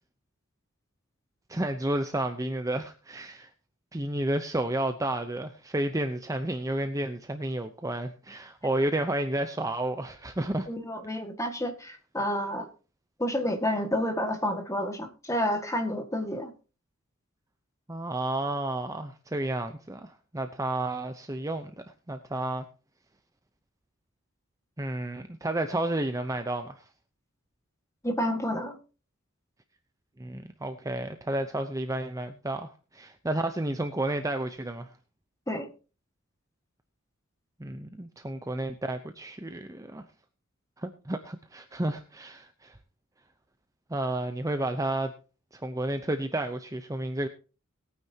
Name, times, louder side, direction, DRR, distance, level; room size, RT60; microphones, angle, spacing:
voice 1, 1.5-3.5 3.9-10.7 11.1-11.2 17.9-22.6 24.8-26.8 30.2-34.9 37.6-40.0 40.8-42.7 43.9-45.1 45.5-47.3, right 1 dB, 15° right, 7 dB, 0.7 m, -31 dB
voice 2, 10.7-12.7 13.2-16.5 28.0-28.8 35.5-35.7, equal, 15° left, 6 dB, 1.8 m, -30 dB
20.5 x 9.4 x 2.8 m, 0.34 s
head